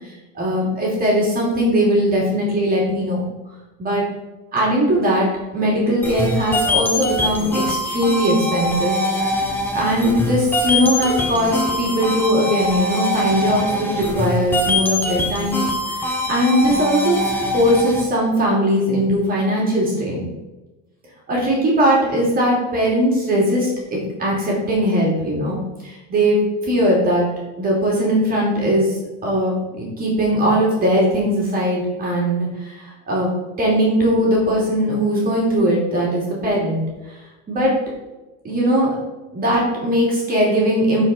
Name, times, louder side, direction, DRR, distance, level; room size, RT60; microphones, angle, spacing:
voice 1, 0.3-3.2 3.8-4.0 4.5-8.9 9.7-15.7 16.0-17.2 17.5-20.2 21.3-26.4 26.7-27.3 27.6-28.9 29.2-36.8 37.5-37.7 38.4-39.0 39.3-41.0, equal, 25° right, -4 dB, 2.9 m, -19 dB
sound 1, 6.0-18.0, left 1 dB, 5° left, 0.8 m, -23 dB
11.5 x 4.8 x 4.2 m, 1.1 s
cardioid pair, 155°, 38 cm